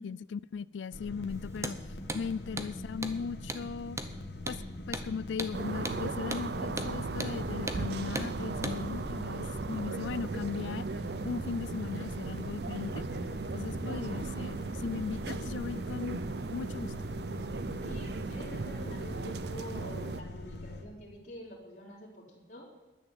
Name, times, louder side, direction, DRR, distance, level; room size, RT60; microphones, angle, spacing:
voice 1, 0.0-1.8 2.1-4.0 4.5-4.6 4.9-10.9 11.2-13.1 13.5-16.2 16.5-16.9, left 5 dB, 80° left, 0.4 m, -37 dB
sound 1, 0.9-20.8, left 1 dB, 60° left, 1.6 m, -43 dB
Hammer, 1.5-1.8 2.1-2.2 2.6-2.7 3.0-3.2 3.5-3.6 4.0-4.1 4.5-4.6 4.9-5.1 5.4-5.5 5.9-6.0 6.3-6.5 6.8-6.9 7.2-7.4 7.7-7.8 8.2-8.3 8.6-8.8, right 2 dB, 15° right, 0.8 m, -36 dB
sound 2, 5.5-20.2, right 3 dB, 60° right, 0.5 m, -37 dB
voice 2, 17.8-22.7, equal, 45° left, 3.1 m, -46 dB
11.0 x 9.7 x 7.9 m
head